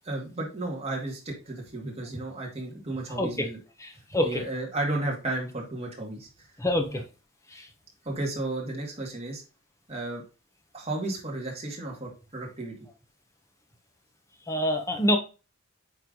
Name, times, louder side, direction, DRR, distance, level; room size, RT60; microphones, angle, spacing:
voice 1, 0.0-3.6 4.2-6.5 6.9-7.0 8.0-9.4 9.9-10.2 10.7-12.7, right 2 dB, 30° right, -1 dB, 2.2 m, -33 dB
voice 2, 3.8-4.3 6.6-7.0 7.5-7.6 14.5-15.2, left 1 dB, 15° left, 3 dB, 1.1 m, -26 dB
9.3 x 3.5 x 3.9 m, 0.33 s
head